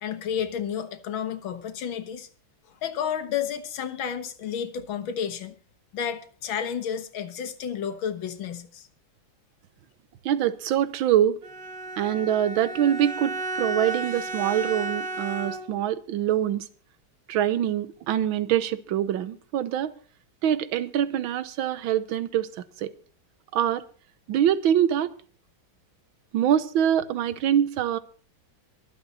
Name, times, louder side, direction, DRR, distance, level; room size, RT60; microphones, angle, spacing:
voice 1, 0.0-2.3 2.7-5.6 5.9-8.9, left 8 dB, 90° left, 2.0 m, -31 dB
voice 2, 10.3-11.4 12.0-16.7 17.3-19.9 20.4-22.5 22.8-22.9 23.5-23.8 24.3-25.1 26.3-28.0, right 10 dB, 90° right, 1.6 m, -24 dB
Bowed string instrument, 11.4-15.9, right 2 dB, 75° right, 2.2 m, -33 dB
23.0 x 7.9 x 4.1 m
omnidirectional pair, 2.1 m